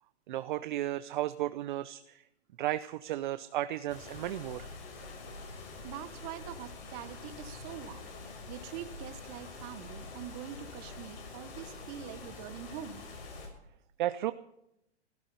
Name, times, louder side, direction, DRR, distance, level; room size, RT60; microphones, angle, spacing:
voice 1, 0.3-2.2 2.6-4.7 14.0-14.3, right 14 dB, 45° right, 13 dB, 0.6 m, -34 dB
sound 1, 3.9-13.5, left 3 dB, 55° left, 6.1 m, -46 dB
voice 2, 5.8-8.1 8.5-13.0, right 11 dB, 30° right, 11 dB, 1.1 m, -44 dB
15.5 x 13.0 x 5.5 m, 0.83 s
hypercardioid pair, 150°, 33 cm